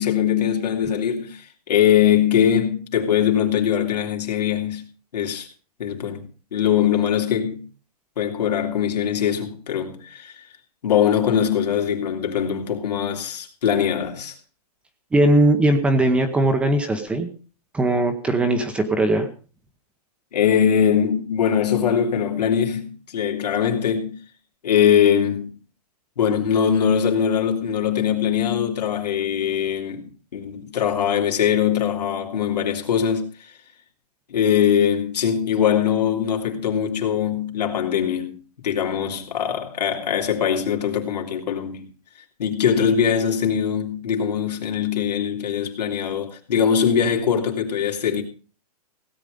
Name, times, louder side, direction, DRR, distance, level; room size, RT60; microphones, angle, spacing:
voice 1, 0.0-4.8 5.1-5.5 5.8-6.3 6.5-7.6 8.2-10.5 10.8-14.3 20.3-24.1 24.6-25.6 26.2-33.5 34.3-41.9 42.4-48.2, left 8 dB, 85° left, 3.2 m, -22 dB
voice 2, 15.1-17.3 17.7-19.3, right 1 dB, 5° right, 0.9 m, -19 dB
17.0 x 8.9 x 5.2 m
hypercardioid pair, 165°, 20 cm